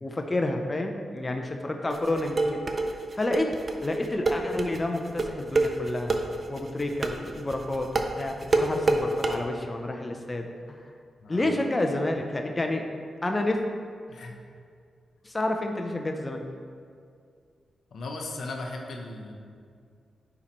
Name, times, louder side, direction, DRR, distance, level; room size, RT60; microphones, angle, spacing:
voice 1, 0.0-2.6 3.2-3.5 3.8-6.1 6.5-7.9 8.2-10.8 11.3-12.8 13.2-13.6 15.2-16.4, left 2 dB, 25° left, 3 dB, 0.6 m, -29 dB
sound 1, 1.9-9.3, right 3 dB, 45° right, 0.6 m, -26 dB
voice 2, 11.2-11.5 14.1-14.3 17.9-19.3, left 2 dB, 75° left, 2 dB, 0.8 m, -37 dB
9.8 x 4.5 x 3.0 m, 2.2 s
cardioid pair, 70°, 0 cm